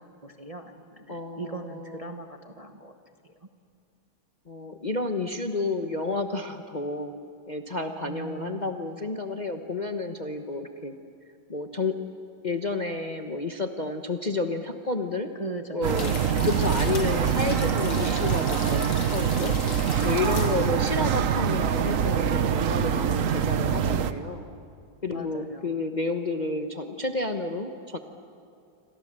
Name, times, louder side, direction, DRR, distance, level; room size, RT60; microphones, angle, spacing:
voice 1, 0.0-2.9 3.2-3.3 8.0-8.7 15.4-16.5 25.1-25.7, right 3 dB, 25° right, 5 dB, 1.0 m, -40 dB
voice 2, 1.1-2.2 4.5-7.1 7.5-10.9 11.5-12.0 12.4-15.3 15.7-16.1 16.4-19.6 20.0-24.4 25.0-28.0, left 3 dB, 30° left, 5 dB, 0.9 m, -30 dB
sound 1, 15.8-24.1, right 8 dB, 55° right, 1.1 m, -25 dB
sound 2, 15.9-22.1 22.5-22.6, left 6 dB, 85° left, 2.3 m, -40 dB
28.0 x 26.5 x 7.6 m, 2.4 s
omnidirectional pair, 2.0 m